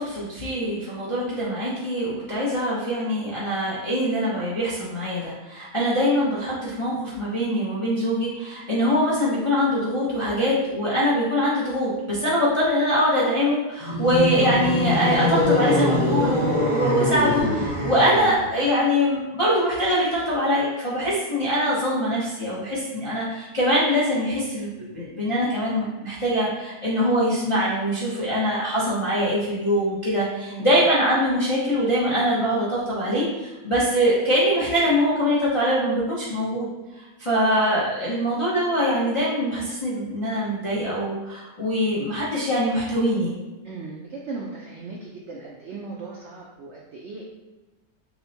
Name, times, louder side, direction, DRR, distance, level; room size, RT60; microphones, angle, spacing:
voice 1, 0.0-36.7 37.2-43.3, equal, 55° left, -8 dB, 0.3 m, -23 dB
sound 1, 13.8-18.5, left 1 dB, 30° right, 1.1 m, -23 dB
voice 2, 30.5-30.8 43.6-47.2, right 3 dB, 85° right, -3 dB, 0.6 m, -37 dB
5.9 x 2.1 x 2.7 m, 1.1 s
omnidirectional pair, 1.8 m